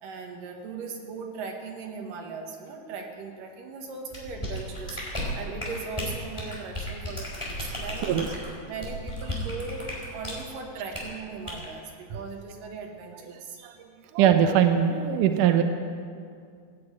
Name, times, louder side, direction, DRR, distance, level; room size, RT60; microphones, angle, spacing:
voice 1, 0.0-8.2 8.7-13.6, right 4 dB, 60° right, 2 dB, 3.0 m, -38 dB
sound 1, 4.1-10.4 10.9-11.1 11.5-11.7, left 1 dB, 5° left, 3.5 m, -34 dB
voice 2, 14.1-15.6, right 9 dB, 80° right, 6 dB, 1.8 m, -21 dB
16.5 x 9.9 x 8.8 m, 2.2 s
omnidirectional pair, 4.9 m